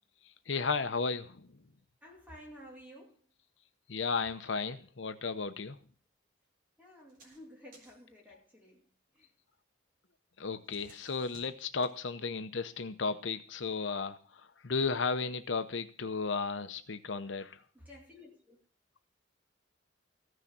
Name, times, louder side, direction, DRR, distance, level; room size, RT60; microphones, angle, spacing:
voice 1, 0.5-1.4 3.9-5.8 10.4-17.6, left 4 dB, 75° left, 9 dB, 0.8 m, -34 dB
voice 2, 2.0-3.3 4.4-4.5 6.8-8.9 9.1-9.3 10.9-11.0 17.7-18.6, equal, 10° right, -1 dB, 2.4 m, -53 dB
sound 1, 7.0-7.4 7.7-8.1 10.4-12.0, right 2 dB, 45° right, 3.6 m, -60 dB
15.0 x 6.4 x 7.2 m, 0.44 s
head